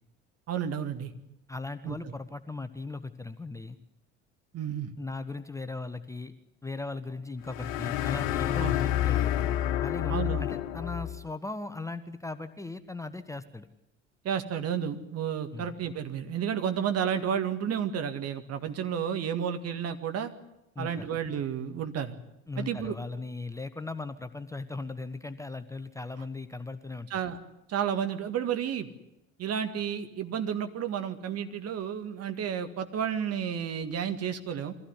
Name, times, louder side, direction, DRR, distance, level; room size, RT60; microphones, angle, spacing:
voice 1, 0.5-1.1 1.8-2.0 4.5-4.9 8.6-8.8 10.1-10.5 14.2-20.3 20.8-22.2 22.6-23.0 27.1-27.4 27.7-28.9 29.4-34.7, right 8 dB, 40° right, 8 dB, 2.0 m, -31 dB
voice 2, 1.5-3.8 5.0-6.3 6.6-9.3 9.8-13.7 15.5-15.8 20.7-21.0 22.5-27.2, left 3 dB, 10° left, 10 dB, 1.1 m, -38 dB
sound 1, 7.4-11.2, left 12 dB, 55° left, 1.5 m, -29 dB
23.5 x 16.0 x 9.9 m, 0.89 s
figure-of-eight pair, 60°, 37 cm